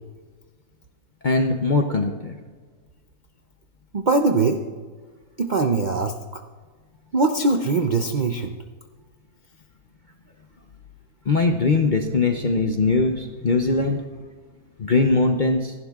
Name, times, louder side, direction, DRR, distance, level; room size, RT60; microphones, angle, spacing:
voice 1, 1.2-2.3 11.3-14.0 14.8-15.7, left 3 dB, 50° left, 4 dB, 0.5 m, -21 dB
voice 2, 3.9-4.6 5.4-6.2 7.1-8.6, right 3 dB, 65° right, 5 dB, 0.4 m, -21 dB
28.5 x 11.0 x 2.4 m, 1.5 s
omnidirectional pair, 1.7 m